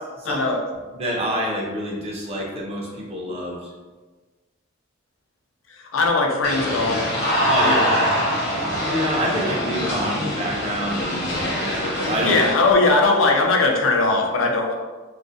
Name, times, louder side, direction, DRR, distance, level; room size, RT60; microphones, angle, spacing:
voice 1, 0.2-0.6 5.8-7.1 7.6-7.9 12.2-14.7, left 3 dB, 70° left, 2 dB, 0.4 m, -19 dB
voice 2, 0.9-3.7 7.5-8.0 8.9-12.4, equal, 30° right, -3 dB, 0.5 m, -27 dB
sound 1, 6.4-12.5, equal, 55° left, 0.8 m, -24 dB
2.4 x 2.0 x 2.5 m, 1.3 s
head